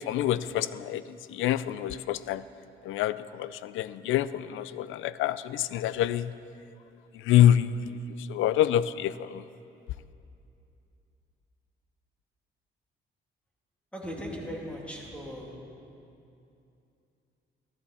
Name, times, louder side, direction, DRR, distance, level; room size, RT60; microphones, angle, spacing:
voice 1, 0.1-2.4 2.8-6.3 7.1-8.0 8.3-9.4, left 11 dB, 85° left, 16 dB, 0.4 m, -26 dB
voice 2, 13.9-15.5, equal, 5° left, -2 dB, 2.7 m, -38 dB
15.0 x 13.5 x 4.2 m, 2.7 s
cardioid pair, 90°, 20 cm